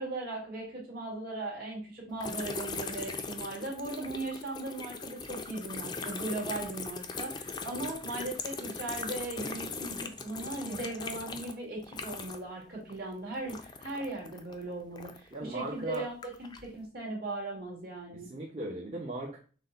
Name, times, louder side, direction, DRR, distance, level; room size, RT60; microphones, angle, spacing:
voice 1, 0.0-18.3, right 2 dB, 50° right, -2 dB, 2.1 m, -38 dB
sound 1, 2.2-12.6 12.8-15.4 15.9-16.7, left 4 dB, 20° left, 0.4 m, -40 dB
voice 2, 15.3-16.0 18.1-19.4, right 2 dB, 35° right, -3 dB, 0.8 m, -38 dB
6.2 x 2.2 x 3.8 m, 0.37 s
head